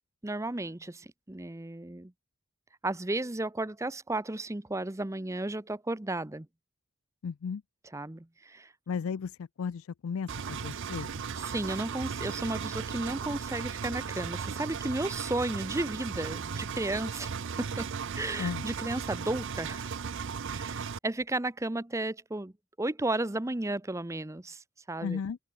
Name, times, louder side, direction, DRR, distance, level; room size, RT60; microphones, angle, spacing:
voice 1, 0.2-2.1 2.8-6.5 7.9-8.7 11.3-19.9 20.5-22.5 22.8-25.2, right 2 dB, 15° right, 0.7 m, -34 dB
voice 2, 7.2-7.6 8.9-11.2 18.4-18.6 25.0-25.4, left 6 dB, 70° left, 0.4 m, -35 dB
Engine, 10.3-21.0, right 6 dB, 55° right, 0.6 m, -36 dB
head